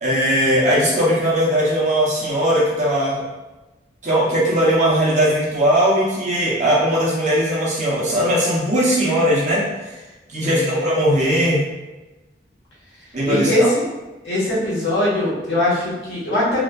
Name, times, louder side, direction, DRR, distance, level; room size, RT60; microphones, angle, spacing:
voice 1, 0.0-3.2 4.0-9.6 10.3-11.6 13.1-13.7, equal, 40° right, -5 dB, 0.7 m, -19 dB
voice 2, 10.4-10.8 13.2-13.7 14.2-16.6, left 1 dB, 80° left, -8 dB, 1.1 m, -21 dB
3.0 x 2.4 x 2.3 m, 1.1 s
head